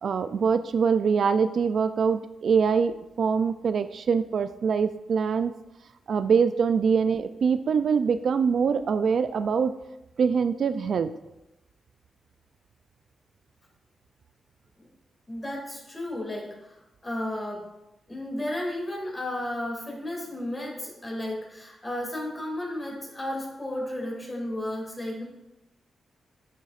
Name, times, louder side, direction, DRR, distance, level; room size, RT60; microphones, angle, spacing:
voice 1, 0.0-5.5 6.1-9.7 10.2-11.1, right 6 dB, 65° right, 11 dB, 0.3 m, -24 dB
voice 2, 15.3-17.7 18.1-25.2, left 1 dB, 25° left, -1 dB, 2.5 m, -33 dB
10.5 x 6.9 x 2.5 m, 0.95 s
cardioid pair, 95°, 0 cm